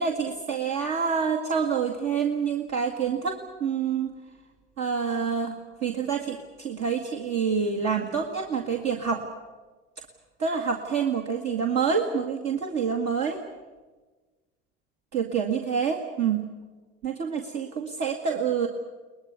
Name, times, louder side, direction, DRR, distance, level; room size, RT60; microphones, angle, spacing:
voice 1, 0.0-4.2 4.8-9.2 10.4-13.4 15.1-16.5 17.0-18.7, right 6 dB, 55° right, 1 dB, 2.2 m, -27 dB
22.5 x 20.0 x 9.5 m, 1.3 s
hypercardioid pair, 75°, 33 cm